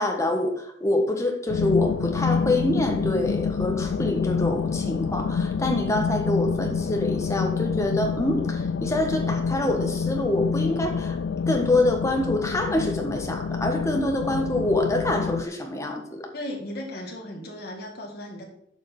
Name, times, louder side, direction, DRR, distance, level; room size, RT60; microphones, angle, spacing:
voice 1, 0.0-11.2 11.5-16.3, left 1 dB, 15° left, 3 dB, 1.4 m, -26 dB
sound 1, 1.5-15.4, left 5 dB, 85° left, 0.4 m, -27 dB
voice 2, 16.3-18.5, left 1 dB, 60° left, 1 dB, 2.1 m, -36 dB
7.5 x 5.7 x 6.0 m, 0.76 s
head